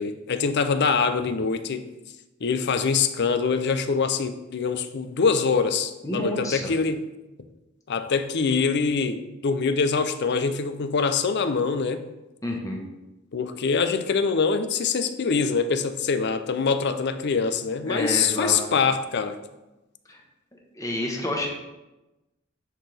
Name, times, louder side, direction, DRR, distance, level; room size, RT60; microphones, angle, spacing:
voice 1, 0.0-1.8 2.4-7.1 7.9-12.0 13.3-19.4, left 5 dB, 55° left, 11 dB, 0.5 m, -24 dB
voice 2, 6.0-6.7 12.4-12.8 17.9-18.6 20.1-20.2 20.7-21.5, left 1 dB, 15° left, 0 dB, 1.2 m, -29 dB
10.0 x 4.4 x 3.3 m, 1.0 s
head